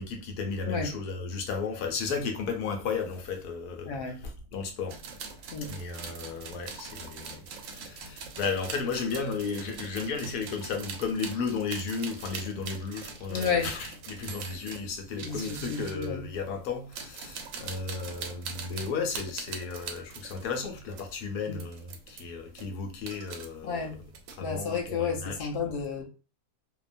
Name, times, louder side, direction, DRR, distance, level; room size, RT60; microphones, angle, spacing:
voice 1, 0.0-5.0 5.7-23.9 24.4-25.5, left 5 dB, 85° left, 1.2 m, -34 dB
voice 2, 3.8-4.2 5.5-5.8 13.3-13.7 15.2-16.2 21.5-21.6 23.6-24.0 24.4-26.0, left 5 dB, 50° left, 0.7 m, -31 dB
sound 1, 4.9-16.1 16.8-21.2 21.5-22.2 22.5-23.5 23.8-24.6, right 5 dB, 70° right, 0.9 m, -42 dB
2.8 x 2.2 x 2.4 m
omnidirectional pair, 1.6 m